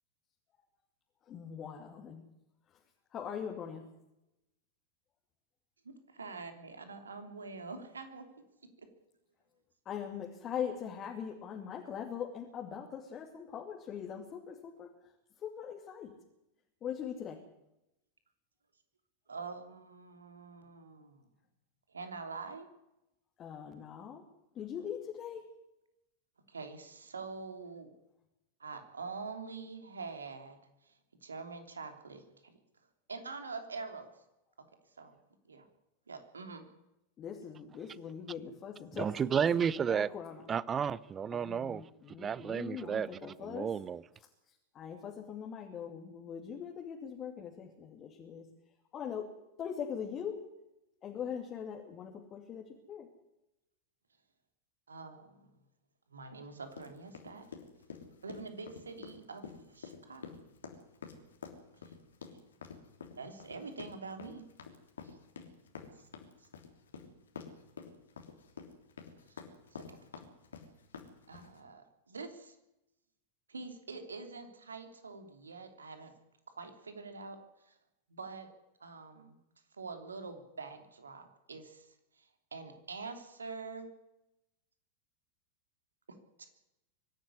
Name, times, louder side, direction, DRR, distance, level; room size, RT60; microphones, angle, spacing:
voice 1, 1.3-2.2 3.1-3.8 9.8-14.9 15.4-16.1 16.8-17.4 23.4-24.2 24.5-25.4 37.2-40.6 41.3-43.7 44.5-48.4 48.9-49.3 49.6-50.4 51.0-53.1, left 8 dB, 30° left, 2.7 m, -41 dB
voice 2, 5.8-8.3 8.8-8.9 19.3-21.3 21.9-22.7 26.5-27.9 28.6-30.9 31.2-32.6 33.1-34.1 35.0-35.1 35.4-35.6 36.1-36.7 54.9-55.5 56.1-57.4 58.2-60.3 61.8-61.9 62.2-62.4 63.2-64.5 65.0-65.2 66.4-66.5 69.3-69.4 69.7-70.0 71.3-72.5 73.5-76.1 76.6-77.4 77.7-77.8 78.1-78.5 78.8-79.4 79.8-83.9 86.4-86.5, right 4 dB, 75° right, 3.0 m, -45 dB
voice 3, 38.9-40.1 40.5-44.0, right 7 dB, 20° right, 0.7 m, -32 dB
sound 1, 56.7-71.6, left 6 dB, 65° left, 3.2 m, -48 dB
24.5 x 11.5 x 9.7 m
figure-of-eight pair, 90°, 0 cm